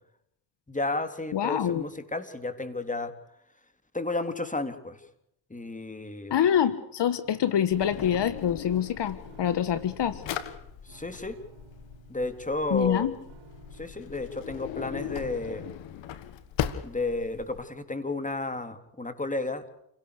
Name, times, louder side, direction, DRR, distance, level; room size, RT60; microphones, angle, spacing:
voice 1, 0.7-3.1 3.9-5.0 5.5-6.4 10.8-11.4 12.1-13.1 13.7-15.7 16.8-19.6, left 2 dB, 15° left, 9 dB, 3.7 m, -32 dB
voice 2, 1.3-1.8 6.3-10.2 12.7-13.1, left 9 dB, 70° left, 14 dB, 1.5 m, -25 dB
sound 1, 7.2-15.2, right 5 dB, 80° right, 3.7 m, -54 dB
Drawer open or close, 7.7-17.6, left 10 dB, 90° left, 1.8 m, -39 dB
29.0 x 18.0 x 6.8 m, 0.76 s
supercardioid pair, 60°, 43 cm